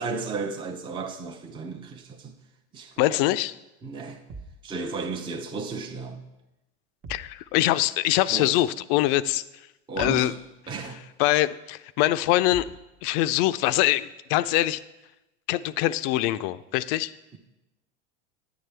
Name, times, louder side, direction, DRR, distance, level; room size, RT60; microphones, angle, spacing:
voice 1, 0.0-2.4 2.7-3.2 3.8-4.3 4.6-6.3 8.3-8.7 9.9-11.1, right 4 dB, 15° right, 3 dB, 0.6 m, -34 dB
voice 2, 3.0-3.5 7.1-9.4 10.0-10.3 11.2-12.7 13.0-14.8 15.5-17.1, left 15 dB, 55° left, 15 dB, 0.5 m, -23 dB
sound 1, 4.3-4.7 7.0-7.4 10.0-10.3 12.5-12.9, right 3 dB, 30° right, 1.0 m, -42 dB
9.6 x 9.4 x 3.3 m, 0.98 s
supercardioid pair, 110°, 35 cm